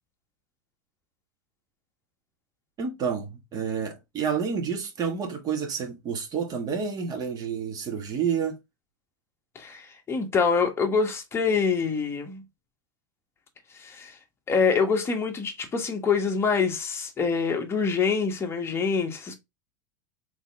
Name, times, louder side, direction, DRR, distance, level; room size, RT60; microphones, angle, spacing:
voice 1, 2.8-8.6, right 6 dB, 35° right, 1.6 m, -29 dB
voice 2, 9.5-12.4 13.8-14.1 14.5-19.3, left 5 dB, 25° left, 1.3 m, -25 dB
4.0 x 3.5 x 3.3 m
hypercardioid pair, 105°, 11 cm